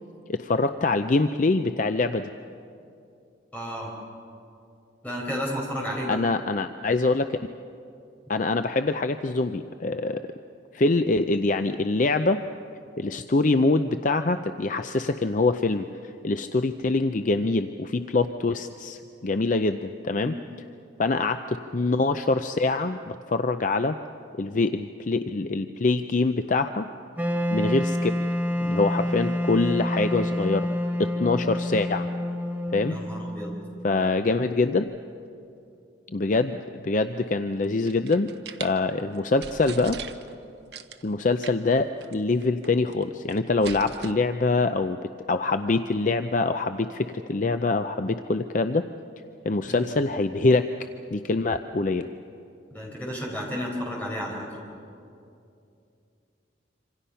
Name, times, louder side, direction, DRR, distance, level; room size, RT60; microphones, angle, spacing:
voice 1, 0.3-2.3 6.1-7.3 8.3-10.2 10.7-12.4 13.0-15.9 16.2-20.4 21.0-24.0 24.4-26.9 27.5-28.1 28.6-30.7 31.0-32.1 32.7-33.0 33.8-34.8 36.1-38.3 38.6-40.0 41.0-45.0 45.3-48.8 49.5-50.7 51.1-52.1, left 3 dB, 45° left, 8 dB, 0.5 m, -24 dB
voice 2, 3.5-3.9 5.0-6.2 20.2-20.4 32.9-33.5 49.6-49.9 52.7-54.5, equal, 10° left, -2 dB, 5.1 m, -32 dB
Wind instrument woodwind instrument, 27.2-34.1, left 1 dB, 10° right, 1.1 m, -28 dB
sound 1, 37.6-38.7 39.2-39.3 39.4-40.4 40.7-41.1 41.4-41.7 42.0-42.1 42.4-43.0 43.3-44.1, right 6 dB, 60° right, 0.9 m, -39 dB
27.0 x 25.5 x 5.7 m, 2.6 s
head